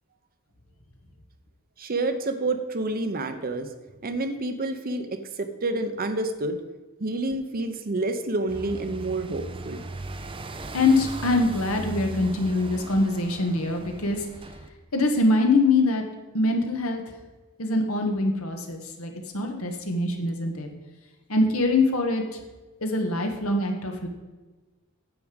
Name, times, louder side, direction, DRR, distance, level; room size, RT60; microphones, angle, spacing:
voice 1, 1.8-3.7 4.0-6.6 7.0-9.8, right 2 dB, 45° right, 8 dB, 0.9 m, -28 dB
sound 1, 8.5-14.7, right 2 dB, 25° right, 0.6 m, -38 dB
voice 2, 10.7-14.2 14.9-16.0 16.3-17.0 17.6-20.7 21.3-22.2 22.8-24.1, left 2 dB, 75° left, 3 dB, 1.6 m, -24 dB
9.7 x 7.7 x 5.2 m, 1.2 s
head